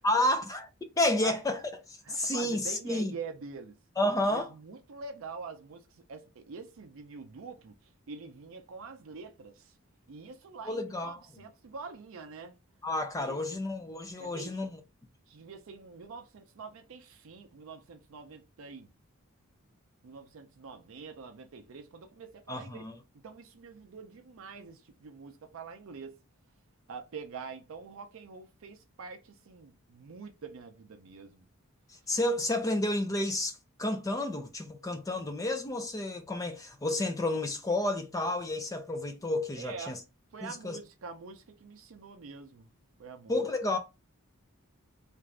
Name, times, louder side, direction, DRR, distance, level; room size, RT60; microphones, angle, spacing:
voice 1, 0.0-0.7 1.0-1.6 1.9-3.1 4.0-4.5 10.7-11.2 12.8-14.7 22.5-22.9 32.1-40.0 40.4-40.8 43.3-43.8, left 1 dB, 15° left, 0.4 m, -30 dB
voice 2, 2.0-3.8 4.3-7.7 8.1-9.7 10.1-12.6 13.2-13.6 14.2-14.6 15.3-18.9 20.0-22.9 23.2-26.2 26.9-31.5 39.6-40.0 40.3-42.7 43.0-43.4, right 4 dB, 65° right, 0.4 m, -45 dB
2.5 x 2.4 x 3.1 m
head